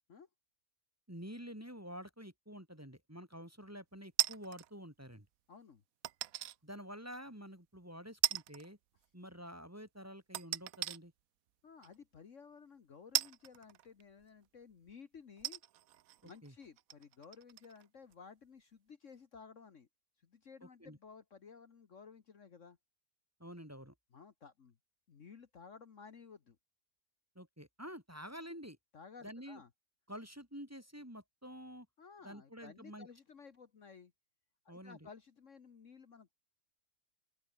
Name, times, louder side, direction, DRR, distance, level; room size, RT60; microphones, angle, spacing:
voice 1, 1.1-5.3 6.6-8.8 9.1-11.1 16.2-16.5 20.6-21.0 23.4-23.9 27.3-28.8 29.2-29.6 30.1-31.9 32.2-33.1 34.7-35.1, equal, 10° right, 3.0 m, -49 dB
sound 1, 4.2-4.7 6.0-6.6 7.1-7.2 8.2-8.7 9.0-9.1 10.3-11.0 11.8-11.9 13.1-14.2 14.9-15.0 15.4-17.8 18.1-18.2, right 13 dB, 70° right, 1.1 m, -36 dB
voice 2, 5.5-5.8 11.6-15.6 16.2-19.9 20.2-22.8 24.1-24.8 25.1-26.6 28.9-29.7 32.0-34.1 34.6-36.3, left 5 dB, 55° left, 1.6 m, -55 dB
open air
omnidirectional pair, 1.6 m